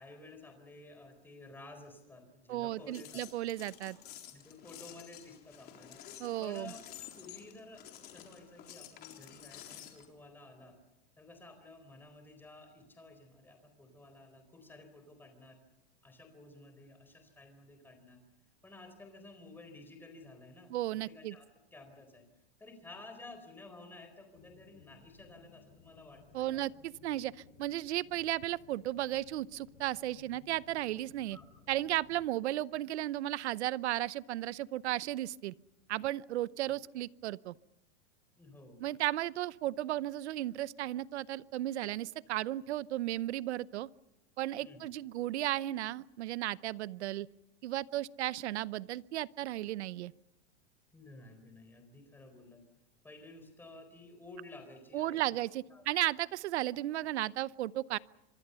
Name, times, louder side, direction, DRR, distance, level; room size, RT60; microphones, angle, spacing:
voice 1, 0.0-3.2 4.3-10.8 11.2-15.6 16.0-18.2 18.6-22.2 22.6-26.6 31.3-31.5 36.6-36.8 38.4-38.8 44.6-44.8 50.9-52.6 53.0-55.4 55.7-55.8, left 2 dB, 5° left, 7 dB, 4.2 m, -53 dB
voice 2, 2.5-4.0 6.2-6.7 20.7-21.3 26.3-31.4 31.7-35.5 35.9-37.5 38.8-43.9 44.4-47.3 47.6-50.1 54.9-58.0, right 14 dB, 80° right, 20 dB, 0.8 m, -35 dB
sound 1, 2.7-10.1, left 10 dB, 30° left, 3.9 m, -51 dB
sound 2, 24.3-32.3, left 7 dB, 65° left, 5.5 m, -61 dB
26.5 x 23.0 x 6.9 m, 0.91 s
supercardioid pair, 160°, 33 cm